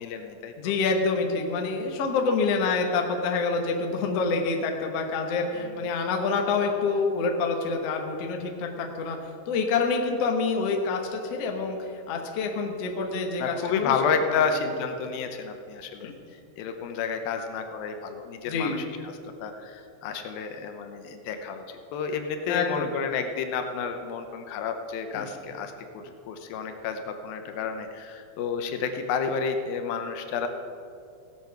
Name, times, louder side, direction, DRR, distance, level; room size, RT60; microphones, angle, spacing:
voice 1, 0.0-0.7 5.6-5.9 13.4-16.1 16.6-19.1 19.4-30.5, left 6 dB, 80° left, 6 dB, 2.6 m, -31 dB
voice 2, 0.6-9.2 9.5-11.8 12.1-13.9 16.0-16.1 18.4-18.8 22.5-22.9 25.1-25.2, left 4 dB, 60° left, 3 dB, 1.7 m, -27 dB
17.0 x 8.0 x 5.9 m, 2.6 s
omnidirectional pair, 4.3 m